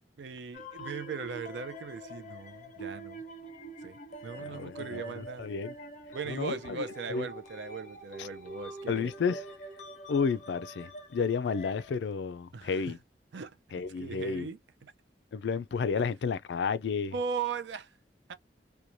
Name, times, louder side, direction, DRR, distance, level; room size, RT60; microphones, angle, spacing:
voice 1, 0.0-3.2 3.8-5.5 6.1-9.1 12.5-13.0 13.3-14.9 16.0-16.1 17.1-17.9 18.3-18.4, right 5 dB, 75° right, 0.5 m, -39 dB
Coral Reef, 0.5-11.9, right 1 dB, 40° left, 0.7 m, -45 dB
voice 2, 4.4-5.7 6.3-6.8 7.1-7.3 8.2-8.3 8.9-9.4 10.1-13.0 13.7-14.5 15.3-17.1, left 5 dB, 70° left, 0.3 m, -31 dB
3.0 x 2.2 x 2.5 m
head